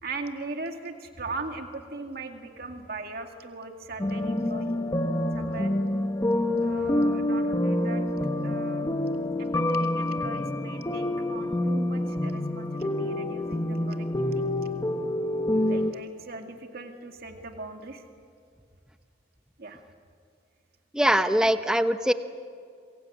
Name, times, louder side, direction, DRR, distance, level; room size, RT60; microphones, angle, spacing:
voice 1, 0.0-4.7 5.3-5.7 6.6-8.0 8.4-8.9 9.4-14.4 15.7-18.0 19.6-19.8 21.4-21.5, right 3 dB, 55° right, 4 dB, 2.1 m, -39 dB
sound 1, 4.0-15.9, left 1 dB, 20° left, 1.1 m, -27 dB
voice 2, 20.9-22.1, equal, 5° right, 9 dB, 0.9 m, -22 dB
27.0 x 23.0 x 8.6 m, 2.2 s
head